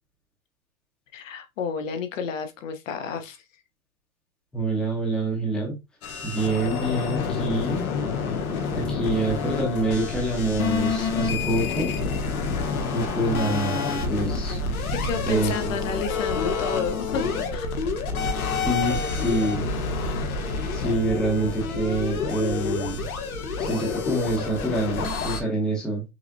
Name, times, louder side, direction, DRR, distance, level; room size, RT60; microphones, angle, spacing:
voice 1, 1.1-3.4 14.9-17.7, left 6 dB, 65° left, 0.9 m, -31 dB
voice 2, 4.5-5.7 6.2-7.8 8.7-11.9 12.9-14.6 15.3-15.7 18.6-19.7 20.7-23.0 23.6-26.0, right 2 dB, ahead, 0.7 m, -26 dB
sound 1, 6.0-25.4, left 4 dB, 85° left, 1.2 m, -28 dB
5.8 x 2.1 x 2.7 m
hypercardioid pair, 155°, 42 cm